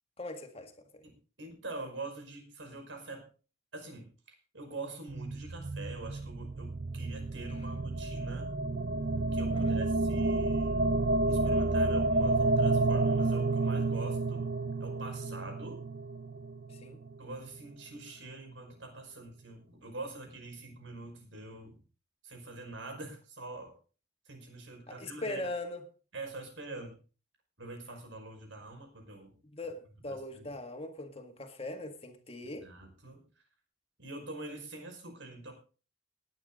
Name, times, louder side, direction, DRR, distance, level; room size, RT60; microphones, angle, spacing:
voice 1, 0.2-1.0 9.5-9.8 16.7-17.0 24.9-25.8 29.5-32.7, left 2 dB, 30° left, 1.8 m, -41 dB
voice 2, 1.0-3.3 3.7-8.5 9.3-11.0 11.3-14.5 14.8-15.8 17.2-21.8 22.2-23.7 24.3-25.4 26.1-27.0 27.6-29.3 30.1-30.5 32.6-33.2 34.0-35.5, right 2 dB, 90° right, 5.4 m, -45 dB
sound 1, 5.1-17.3, right 2 dB, 50° right, 0.6 m, -30 dB
19.0 x 9.5 x 3.9 m
head